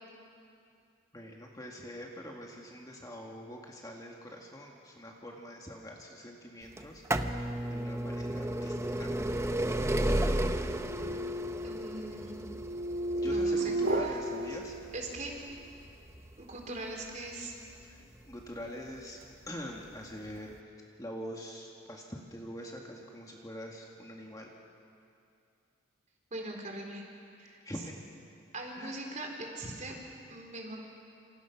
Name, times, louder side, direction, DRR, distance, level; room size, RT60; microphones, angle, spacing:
voice 1, 1.1-9.2 13.1-14.8 17.8-19.2 19.5-20.6 21.0-24.5 27.6-28.0 28.8-29.0, equal, 15° left, -1 dB, 2.0 m, -44 dB
sound 1, 6.8-18.4 19.2-19.3 20.3-20.4 20.6-20.7, right 1 dB, 15° right, 0.8 m, -33 dB
sound 2, 9.8-15.5, right 1 dB, 60° right, 2.2 m, -35 dB
voice 2, 11.6-12.4 13.2-14.1 14.9-15.3 16.4-17.5 26.3-27.0 27.4-27.6 28.5-30.0 30.3-30.8, right 2 dB, 35° right, 1 dB, 4.0 m, -41 dB
27.5 x 27.0 x 6.1 m, 2.5 s
head